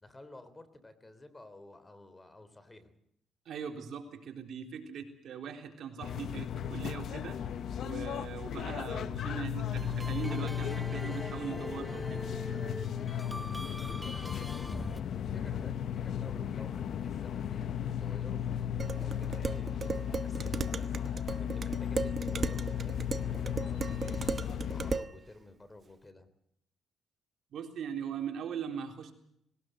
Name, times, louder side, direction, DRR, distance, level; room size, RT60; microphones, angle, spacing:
voice 1, 0.0-3.0 9.3-9.5 14.1-26.3, left 2 dB, 20° left, 12 dB, 3.3 m, -53 dB
voice 2, 3.5-7.5 7.8-12.3 27.5-29.1, right 7 dB, 65° right, 4 dB, 3.7 m, -40 dB
sound 1, 6.0-25.0, left 9 dB, 65° left, 1.0 m, -35 dB
sound 2, 9.7-15.0, right 1 dB, 5° right, 0.8 m, -42 dB
Dishes pots and pans, 18.8-25.1, right 5 dB, 40° right, 1.0 m, -36 dB
20.5 x 19.0 x 7.9 m, 0.73 s
cardioid pair, 90°, 0 cm